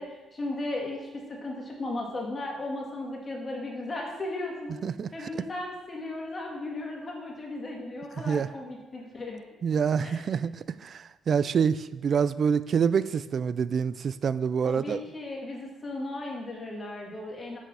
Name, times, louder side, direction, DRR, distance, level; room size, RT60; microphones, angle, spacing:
voice 1, 0.0-4.8 5.1-9.4 9.7-10.2 14.6-17.6, left 2 dB, 35° left, -1 dB, 2.0 m, -36 dB
voice 2, 4.8-5.4 8.2-8.5 9.6-15.0, right 6 dB, 55° right, 16 dB, 0.3 m, -27 dB
6.3 x 5.3 x 6.2 m, 1.1 s
cardioid pair, 90°, 0 cm